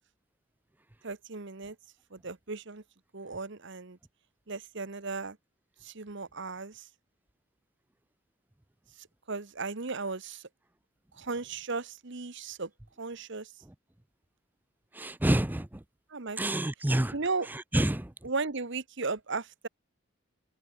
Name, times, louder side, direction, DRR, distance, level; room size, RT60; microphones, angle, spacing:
voice 1, 1.0-1.8 2.1-2.8 3.1-4.0 4.5-5.4 5.8-6.9 9.0-10.5 11.1-12.7 13.0-13.5 16.1-16.4 17.1-17.5 18.2-19.7, right 4 dB, 55° right, 1.2 m, -36 dB
voice 2, 14.9-15.8 16.4-17.1 17.5-18.1, right 1 dB, 10° right, 0.5 m, -28 dB
head